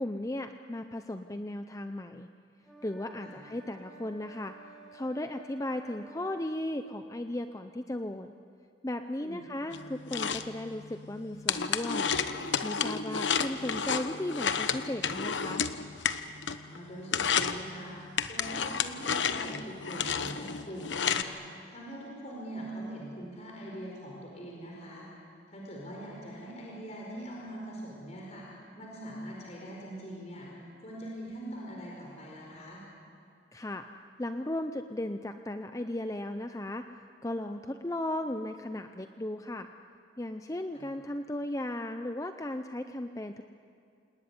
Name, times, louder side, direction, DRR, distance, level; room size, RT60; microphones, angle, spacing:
voice 1, 0.0-2.3 2.8-4.6 4.9-8.3 8.8-12.1 12.6-15.6 33.5-33.8 34.2-36.9 37.2-39.7 40.2-43.4, left 1 dB, 15° left, 7 dB, 0.6 m, -36 dB
sound 1, 2.6-6.6, right 2 dB, ahead, 5.5 m, -53 dB
voice 2, 9.2-9.5 16.5-25.1 25.5-32.9 40.7-40.8, right 1 dB, 35° left, -2 dB, 4.8 m, -43 dB
sound 2, 9.7-16.8 17.0-17.6 18.2-21.2, left 6 dB, 70° left, 1.0 m, -31 dB
28.5 x 19.0 x 9.7 m, 2.4 s
head